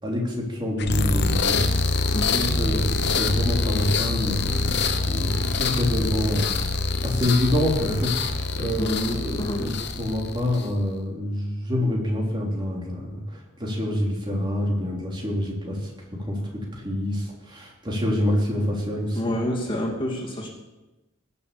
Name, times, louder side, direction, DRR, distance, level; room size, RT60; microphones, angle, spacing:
voice 1, 0.0-1.8 2.6-8.9 9.2-19.2, left 1 dB, 25° right, -2 dB, 3.3 m, -27 dB
sound 1, 0.8-10.8, left 3 dB, 55° left, 1.0 m, -25 dB
voice 2, 2.1-2.5 8.8-9.7 19.1-20.5, equal, 25° left, -2 dB, 2.8 m, -28 dB
19.5 x 7.0 x 6.9 m, 1.1 s
head